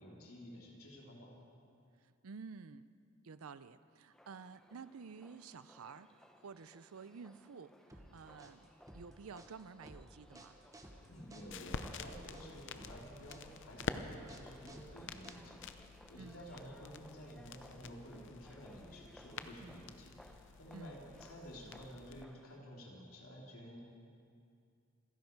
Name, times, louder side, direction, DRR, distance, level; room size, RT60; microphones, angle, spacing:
voice 1, 0.0-1.3 11.1-23.8, equal, 80° left, -3 dB, 3.5 m, -52 dB
voice 2, 2.0-2.9 3.2-8.7 8.9-10.6 16.2-16.5 19.6-19.9 20.7-21.0, right 5 dB, 80° right, 14 dB, 0.6 m, -52 dB
sound 1, 4.1-22.6, equal, 5° left, 0.8 m, -62 dB
sound 2, 7.9-15.8, right 1 dB, 15° right, 1.1 m, -56 dB
sound 3, 11.0-22.3, left 4 dB, 60° left, 0.7 m, -48 dB
27.5 x 10.5 x 4.7 m, 2.4 s
head